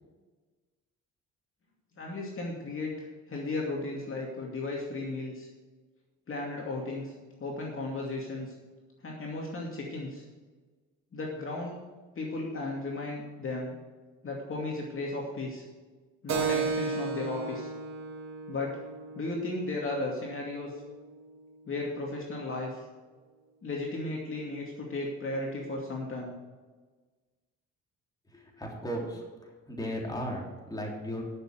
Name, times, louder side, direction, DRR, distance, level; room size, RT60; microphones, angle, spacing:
voice 1, 2.0-5.5 6.3-7.1 7.4-8.5 9.0-10.2 11.1-11.8 12.2-13.7 14.2-15.6 16.2-17.7 18.5-18.8 19.1-20.7 21.7-22.8 23.6-26.3, left 2 dB, 45° left, -2 dB, 2.5 m, -35 dB
Keyboard (musical), 16.3-21.4, right 4 dB, 60° right, 2.0 m, -35 dB
voice 2, 28.3-31.2, equal, 15° left, -2 dB, 3.5 m, -36 dB
11.5 x 7.0 x 6.5 m, 1.3 s
cardioid pair, 90°, 30 cm